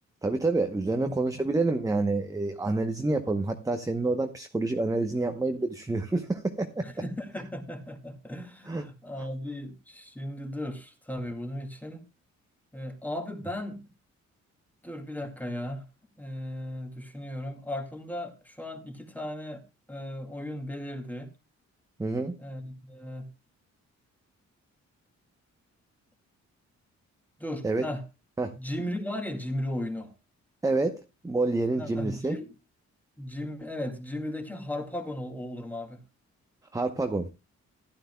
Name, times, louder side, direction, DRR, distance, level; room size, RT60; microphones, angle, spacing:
voice 1, 0.2-6.9 8.7-8.8 22.0-22.4 27.6-27.8 28.4-28.5 30.6-32.4 36.7-37.3, right 2 dB, 10° right, 0.9 m, -28 dB
voice 2, 6.8-12.0 12.7-13.8 14.8-15.8 16.2-19.6 19.9-21.3 22.4-23.3 27.4-28.0 28.6-30.1 31.8-32.5 33.2-36.0, left 1 dB, 5° left, 2.1 m, -36 dB
15.5 x 11.5 x 2.3 m
cardioid pair, 120°, 29 cm